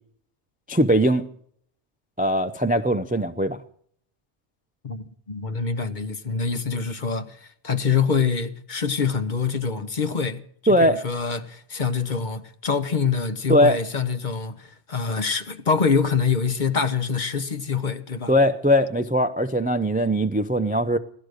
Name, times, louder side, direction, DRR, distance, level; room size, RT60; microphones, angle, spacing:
voice 1, 0.7-1.2 2.2-3.6 10.7-11.0 13.5-13.8 18.3-21.0, equal, 10° right, 0.4 m, -20 dB
voice 2, 4.8-10.4 10.7-18.3, left 5 dB, 45° left, 1.0 m, -25 dB
17.0 x 12.5 x 6.5 m
omnidirectional pair, 1.2 m